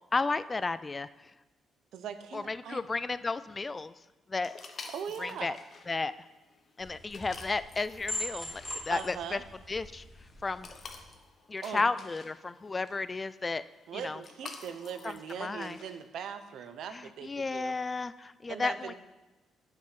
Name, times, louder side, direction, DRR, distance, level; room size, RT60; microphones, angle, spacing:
voice 1, 0.1-1.1 2.3-3.9 4.3-4.5 5.2-5.6 5.9-6.1 6.8-9.4 9.7-10.0 10.4-10.7 11.5-13.6 13.9-14.2 15.0-15.8 16.9-18.9, left 3 dB, 25° left, 15 dB, 0.3 m, -33 dB
voice 2, 1.9-2.8 4.9-5.6 8.9-9.4 11.6-11.9 13.9-17.8 18.5-18.9, right 7 dB, 75° right, 10 dB, 0.7 m, -40 dB
sound 1, 4.4-16.1, left 4 dB, 45° left, 1.1 m, -51 dB
sound 2, 6.8-11.1, left 1 dB, 5° right, 2.1 m, -42 dB
8.7 x 5.4 x 5.8 m, 1.1 s
cardioid pair, 90°, 0 cm